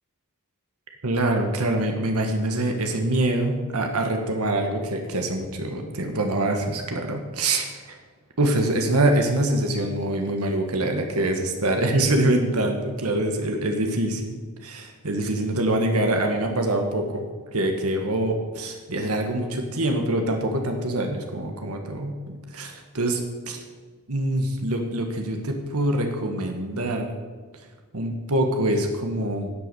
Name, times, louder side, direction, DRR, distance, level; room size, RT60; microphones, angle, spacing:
voice 1, 1.0-8.0 8.4-17.3 17.5-23.2 23.5-23.6 24.1-27.1 27.9-29.5, right 1 dB, 85° right, 3 dB, 1.6 m, -25 dB
12.0 x 8.1 x 6.9 m, 1.5 s
head